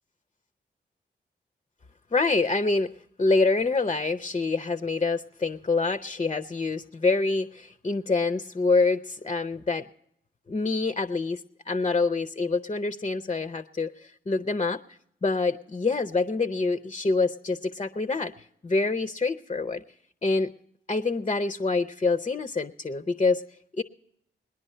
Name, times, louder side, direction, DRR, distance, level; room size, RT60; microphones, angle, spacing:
voice 1, 2.1-9.9 10.5-14.8 15.2-19.8 20.2-20.5 20.9-23.8, left 3 dB, 30° left, 9 dB, 0.5 m, -26 dB
19.0 x 10.5 x 5.4 m, 0.75 s
cardioid pair, 45°, 19 cm